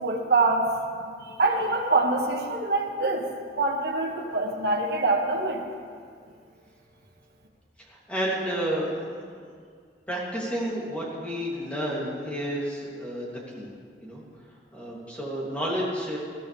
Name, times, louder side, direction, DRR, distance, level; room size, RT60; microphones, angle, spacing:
voice 1, 0.0-0.7 1.0-3.3 3.6-5.6, right 3 dB, 65° right, 0 dB, 1.6 m, -25 dB
voice 2, 8.1-9.1 10.1-13.7 14.0-14.2 14.7-16.2, equal, 10° left, -6 dB, 2.8 m, -30 dB
21.0 x 14.5 x 3.5 m, 2.1 s
head